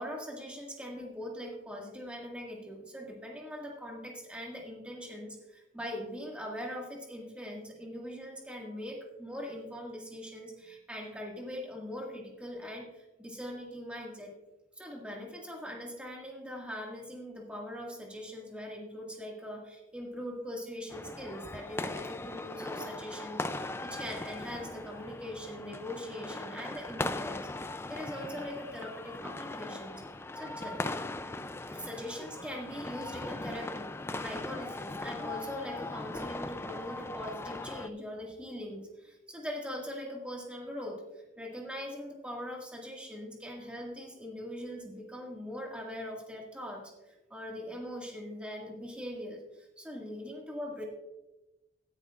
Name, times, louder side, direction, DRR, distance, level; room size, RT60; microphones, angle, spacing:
voice 1, 0.0-14.3 14.8-30.1 30.4-30.8 31.7-33.9 34.2-41.0 41.4-49.4 49.8-50.8, equal, 5° right, -1 dB, 1.8 m, -41 dB
sound 1, 20.9-37.9, left 2 dB, 10° left, 0.3 m, -39 dB
16.0 x 10.5 x 2.4 m, 0.98 s
head